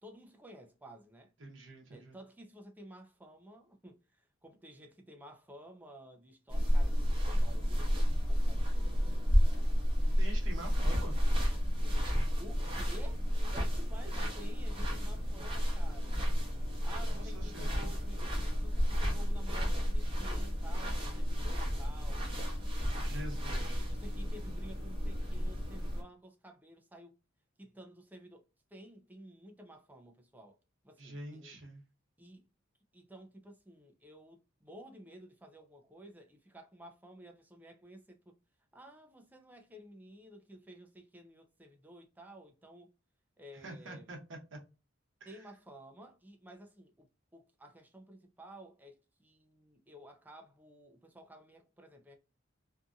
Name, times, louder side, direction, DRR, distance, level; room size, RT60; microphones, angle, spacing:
voice 1, 0.0-1.3 1.9-9.9 11.8-12.1 12.4-13.2 13.5-16.3 16.8-22.4 23.5-27.1 27.6-30.6 30.8-31.6 32.2-32.5 32.9-38.4 38.7-42.9 43.4-44.1 45.3-52.2, right 1 dB, 10° right, 0.4 m, -53 dB
voice 2, 1.4-2.1 10.2-11.2 17.1-17.8 22.9-23.8 31.0-31.8 43.5-44.6 45.2-45.4, right 1 dB, 65° right, 0.8 m, -46 dB
sound 1, 6.5-26.0, equal, 25° right, 0.8 m, -31 dB
2.7 x 2.5 x 2.3 m
head